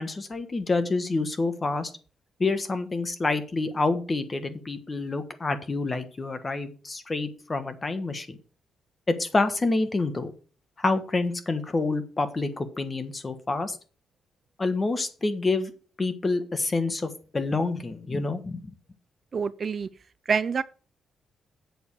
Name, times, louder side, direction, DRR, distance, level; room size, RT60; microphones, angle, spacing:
voice 1, 0.0-1.9 2.4-8.4 9.1-10.3 10.8-13.8 14.6-15.7 16.0-18.6, left 3 dB, 25° left, 1.4 m, -27 dB
voice 2, 19.3-19.9 20.3-20.6, right 5 dB, 40° right, 0.4 m, -26 dB
8.0 x 6.9 x 6.4 m
cardioid pair, 130°, 0 cm